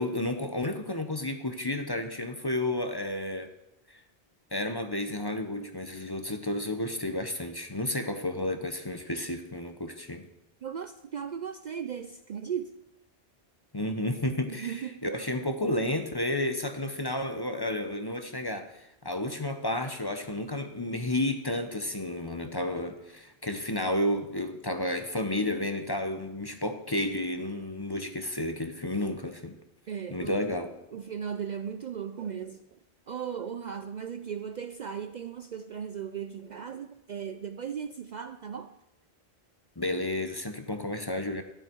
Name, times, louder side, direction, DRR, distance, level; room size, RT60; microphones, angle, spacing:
voice 1, 0.0-3.5 3.9-4.0 4.5-10.2 13.7-29.5 30.1-30.7 39.8-41.4, left 1 dB, 25° left, 0.8 m, -31 dB
voice 2, 10.6-12.7 14.5-15.1 29.9-30.4 30.9-32.6 33.1-38.7, right 7 dB, 55° right, 0.5 m, -37 dB
12.5 x 11.0 x 4.6 m
omnidirectional pair, 1.1 m